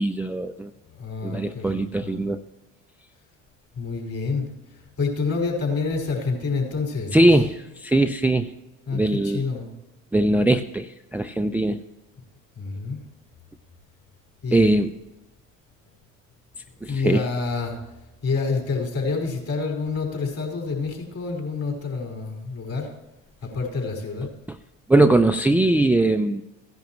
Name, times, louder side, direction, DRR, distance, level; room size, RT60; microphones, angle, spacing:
voice 1, 0.0-0.7 1.2-2.4 7.1-8.5 8.9-9.5 10.1-11.8 14.5-14.9 16.8-17.2 24.9-26.4, right 1 dB, 5° right, 8 dB, 0.4 m, -20 dB
voice 2, 0.9-2.2 3.7-4.4 5.0-7.2 8.9-9.7 12.6-13.0 14.4-14.7 16.8-17.8 18.2-22.9 23.4-24.3, left 4 dB, 45° left, 0 dB, 4.8 m, -28 dB
16.0 x 10.5 x 3.1 m, 0.99 s
supercardioid pair, 75°, 34 cm